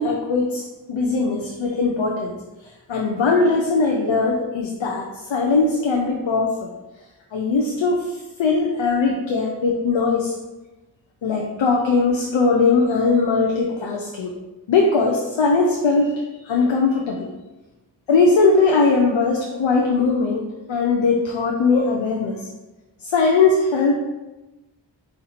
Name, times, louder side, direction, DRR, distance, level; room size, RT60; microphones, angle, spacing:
voice 1, 0.0-2.3 2.9-6.7 7.3-10.3 11.2-14.3 14.7-17.3 18.1-20.4 20.7-22.4 23.0-23.9, left 4 dB, 85° left, 1 dB, 0.6 m, -20 dB
4.3 x 2.6 x 4.1 m, 1.1 s
wide cardioid pair, 50°, 45 cm